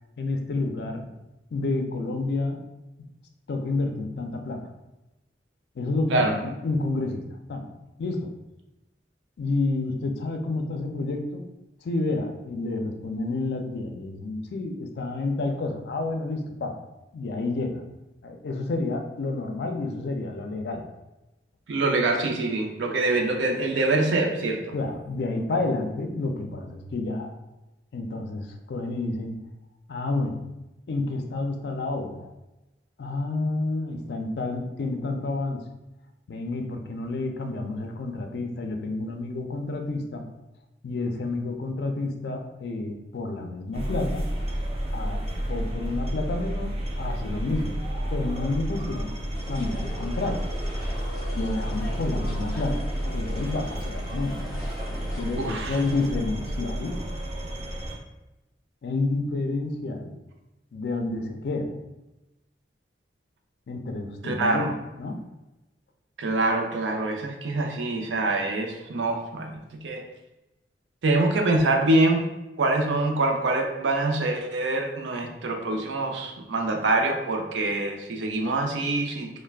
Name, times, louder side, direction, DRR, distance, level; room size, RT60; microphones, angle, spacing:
voice 1, 0.2-1.1 1.5-2.7 3.0-3.1 3.5-4.7 5.8-7.2 7.5-7.7 8.0-8.3 9.4-11.5 11.8-16.8 17.1-17.8 18.2-20.8 24.7-27.3 27.9-29.4 29.9-30.5 30.9-32.3 33.0-35.6 36.3-40.3 40.8-44.3 44.9-47.8 48.1-49.1 49.5-50.5 51.3-54.5 54.9-57.0 58.8-60.1 60.7-61.8 63.7-65.2, left 2 dB, 65° left, 5 dB, 0.4 m, -30 dB
voice 2, 21.7-24.6 55.4-55.8 64.2-64.7 66.2-70.0 71.0-72.3 72.6-79.3, right 2 dB, 90° right, 3 dB, 0.4 m, -25 dB
sound 1, 43.7-58.0, equal, 35° right, 0.5 m, -31 dB
sound 2, 49.3-56.1, left 1 dB, 15° left, 0.6 m, -41 dB
2.3 x 2.1 x 3.3 m, 0.98 s
head